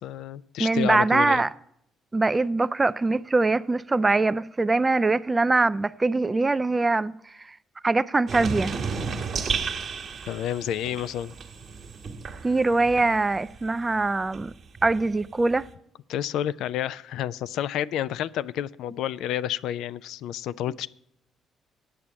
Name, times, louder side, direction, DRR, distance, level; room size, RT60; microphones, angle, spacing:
voice 1, 0.0-1.4 10.3-11.3 16.1-20.9, left 11 dB, 70° left, 0.3 m, -30 dB
voice 2, 0.6-1.5 2.1-7.6 7.8-8.8 12.4-14.5 14.8-15.7, right 3 dB, 25° right, 0.4 m, -23 dB
sound 1, 8.3-13.6 13.9-15.7, right 5 dB, 55° right, 1.4 m, -33 dB
8.9 x 6.9 x 8.6 m
hypercardioid pair, 50°, 0 cm